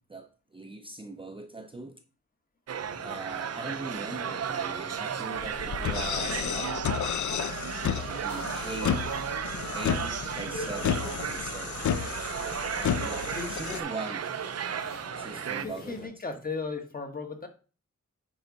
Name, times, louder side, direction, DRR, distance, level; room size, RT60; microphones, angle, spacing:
voice 1, 0.0-1.9 3.0-7.2 8.2-9.1 9.7-12.5 12.7-14.4 15.2-16.4, right 2 dB, 20° right, 0.6 m, -41 dB
sound 1, 2.7-15.7, right 8 dB, 60° right, 0.6 m, -35 dB
sound 2, 2.8-16.1, left 2 dB, 50° left, 3.9 m, -46 dB
sound 3, 5.4-13.8, left 8 dB, 80° left, 0.6 m, -32 dB
voice 2, 15.6-17.5, left 4 dB, 30° left, 1.4 m, -36 dB
9.6 x 4.7 x 4.1 m
wide cardioid pair, 150°, 29 cm